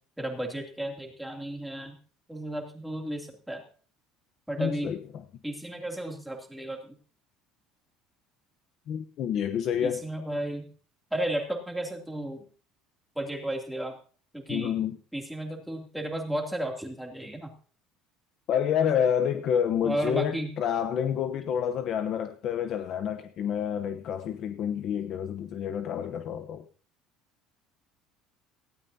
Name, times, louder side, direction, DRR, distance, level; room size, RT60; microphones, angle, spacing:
voice 1, 0.2-2.0 2.3-3.6 4.5-4.9 5.4-6.9 9.8-10.6 11.1-12.4 13.1-14.0 14.3-14.8 15.1-17.5 19.8-20.5, right 1 dB, ahead, 2.8 m, -33 dB
voice 2, 4.6-5.0 8.9-10.1 14.5-15.0 18.5-26.6, left 8 dB, 40° left, 0.9 m, -28 dB
18.5 x 16.5 x 2.8 m
cardioid pair, 175°, 0 cm